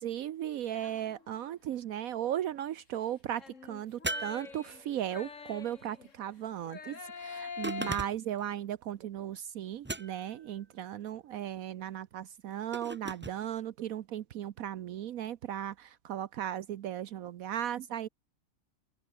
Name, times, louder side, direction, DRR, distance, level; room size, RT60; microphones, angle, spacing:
voice 1, 0.0-18.1, right 11 dB, 75° right, 1.2 m, -36 dB
sound 1, 0.7-1.5 3.3-6.2 6.6-8.0, left 5 dB, 60° left, 2.2 m, -45 dB
sound 2, 4.0-5.1 7.6-8.4 9.8-10.5 12.7-13.4, right 2 dB, 20° right, 0.3 m, -38 dB
open air
omnidirectional pair, 1.5 m